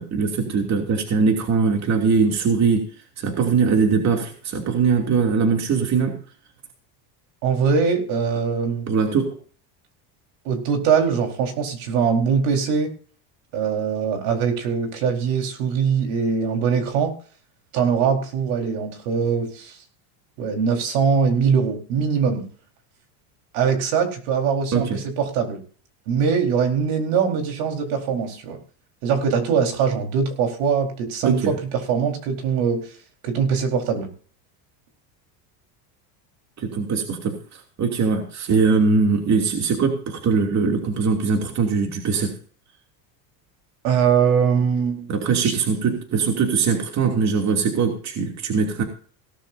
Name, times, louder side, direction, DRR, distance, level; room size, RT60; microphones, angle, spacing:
voice 1, 0.0-2.8 3.2-6.1 8.9-9.4 24.7-25.0 31.2-31.6 36.6-42.3 45.1-48.8, right 5 dB, 35° right, 3 dB, 2.9 m, -21 dB
voice 2, 7.4-8.9 10.4-12.9 13.5-17.1 17.7-19.8 20.4-22.4 23.5-25.6 26.1-28.6 29.0-31.5 31.9-32.9 33.2-34.1 43.8-45.1 45.4-45.6, right 6 dB, 80° right, 3 dB, 4.6 m, -22 dB
17.5 x 13.0 x 2.8 m, 0.42 s
cardioid pair, 140°, 47 cm